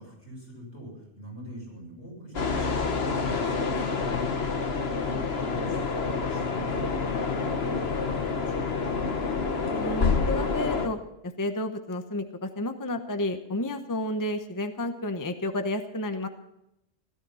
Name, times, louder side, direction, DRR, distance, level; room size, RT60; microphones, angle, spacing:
voice 1, 0.0-4.3 5.1-8.8, right 1 dB, 80° left, -2 dB, 6.7 m, -43 dB
sound 1, 2.3-10.9, left 4 dB, 65° left, 1.6 m, -28 dB
voice 2, 9.7-11.0 11.4-16.3, left 1 dB, 20° left, 7 dB, 0.9 m, -31 dB
17.0 x 13.0 x 5.6 m, 0.85 s
omnidirectional pair, 1.1 m